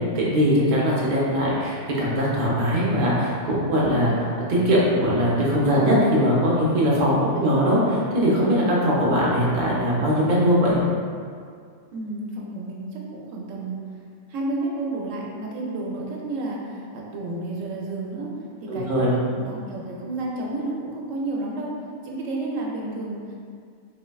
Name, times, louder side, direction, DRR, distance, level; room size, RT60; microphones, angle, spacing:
voice 1, 0.1-10.8 18.7-19.2, equal, 50° right, -6 dB, 0.7 m, -21 dB
voice 2, 7.1-7.5 11.9-13.8 14.3-18.3 18.6-21.7 22.0-23.4, right 2 dB, 85° right, -3 dB, 1.0 m, -31 dB
3.9 x 2.1 x 2.2 m, 2.1 s
omnidirectional pair, 1.3 m